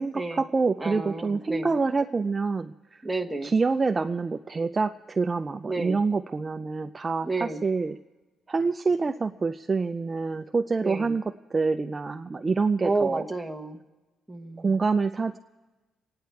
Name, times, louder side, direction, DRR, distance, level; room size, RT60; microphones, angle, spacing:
voice 1, 0.0-2.7 3.4-8.0 8.5-11.2 11.5-13.3 14.6-15.4, right 4 dB, 30° right, 7 dB, 0.4 m, -26 dB
voice 2, 0.8-1.7 3.0-3.5 5.7-6.0 7.2-7.6 10.8-11.1 12.8-13.8 14.3-14.7, right 3 dB, 5° right, 3 dB, 1.2 m, -31 dB
27.0 x 9.6 x 4.6 m, 1.2 s
cardioid pair, 90°, 0 cm